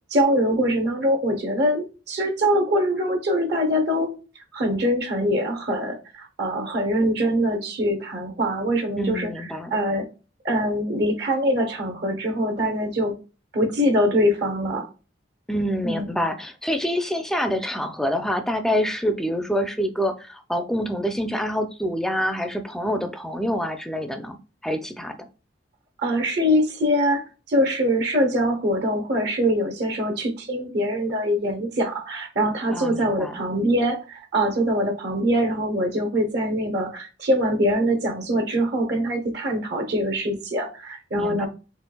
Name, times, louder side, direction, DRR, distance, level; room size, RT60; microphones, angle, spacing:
voice 1, 0.1-4.1 4.5-9.3 9.7-10.1 10.4-13.2 13.5-14.9 15.8-16.1 26.0-41.5, equal, 60° right, 0.8 m, -23 dB
voice 2, 9.0-9.7 15.5-24.4 24.6-25.2 32.7-33.3 41.1-41.5, equal, ahead, 0.4 m, -26 dB
4.4 x 3.0 x 2.2 m
head